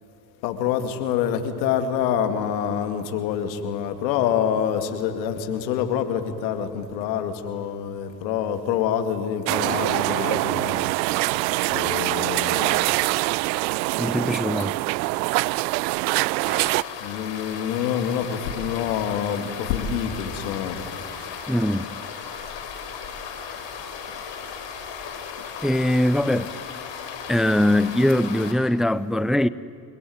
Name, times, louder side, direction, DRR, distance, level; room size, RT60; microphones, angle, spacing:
voice 1, 0.4-10.9 11.7-12.8 17.0-20.8, left 8 dB, 85° left, 2.5 m, -26 dB
sound 1, 9.5-16.8, right 22 dB, 80° right, 0.6 m, -24 dB
voice 2, 14.0-14.8 21.5-21.9 25.6-26.5 27.3-29.5, left 1 dB, ahead, 0.7 m, -21 dB
sound 2, 16.4-28.5, left 7 dB, 60° left, 4.8 m, -36 dB
29.5 x 20.5 x 9.6 m
hypercardioid pair, 65°, 50 cm